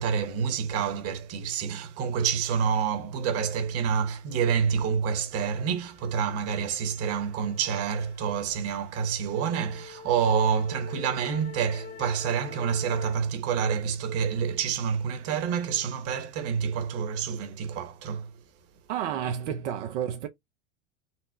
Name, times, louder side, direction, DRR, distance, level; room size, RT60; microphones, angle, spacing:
voice 1, 0.0-18.3 19.4-19.5, right 7 dB, 40° right, 1.2 m, -28 dB
sound 1, 4.5-4.6 4.9-13.2, left 5 dB, 25° left, 0.8 m, -45 dB
voice 2, 18.9-20.3, right 9 dB, 70° right, 0.7 m, -30 dB
4.2 x 2.1 x 4.3 m
hypercardioid pair, 110°, 37 cm